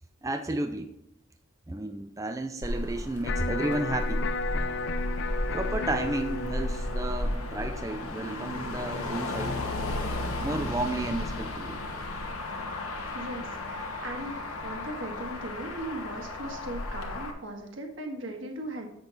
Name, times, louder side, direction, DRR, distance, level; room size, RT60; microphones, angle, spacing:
voice 1, 0.2-0.9 1.7-4.3 5.5-9.6 10.4-11.8, right 2 dB, 15° right, 7 dB, 0.3 m, -32 dB
Motor vehicle (road), 2.6-17.3, left 1 dB, 85° left, 1.2 m, -33 dB
Electric guitar, 3.2-9.3, left 3 dB, 50° left, 0.4 m, -35 dB
voice 2, 13.1-14.3 14.6-18.9, right 1 dB, 60° right, 2 dB, 1.5 m, -38 dB
7.8 x 6.7 x 4.0 m, 0.82 s
head